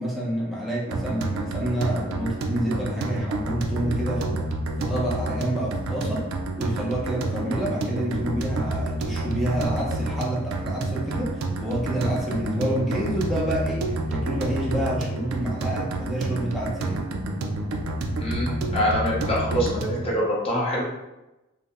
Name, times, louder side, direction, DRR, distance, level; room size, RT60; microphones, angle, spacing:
voice 1, 0.0-4.4 4.8-6.3 6.6-17.0, right 1 dB, ahead, -5 dB, 0.6 m, -28 dB
sound 1, 0.9-20.1, right 2 dB, 80° right, 0.4 m, -29 dB
voice 2, 18.2-20.8, equal, 30° left, -4 dB, 0.8 m, -25 dB
2.6 x 2.1 x 3.4 m, 0.98 s
head